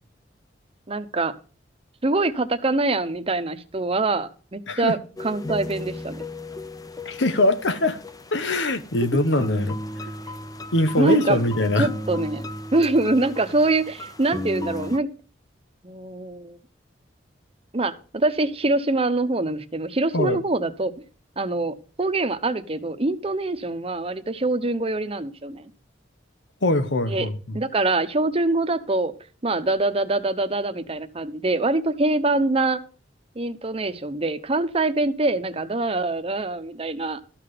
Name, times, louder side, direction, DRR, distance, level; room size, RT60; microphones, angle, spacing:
voice 1, 0.9-1.3 2.0-6.2 9.0-9.1 11.0-12.5 12.7-15.1 15.8-16.6 17.7-20.9 21.4-25.6 27.1-27.3 27.5-29.1 29.4-32.8 33.4-37.2, right 2 dB, 35° right, 0.9 m, -24 dB
sound 1, 5.2-15.0, left 1 dB, 20° left, 0.7 m, -36 dB
voice 2, 7.0-8.0 8.3-9.8 10.7-11.9 20.1-20.4 26.6-27.4, left 2 dB, 90° left, 1.2 m, -22 dB
13.0 x 5.9 x 6.6 m
head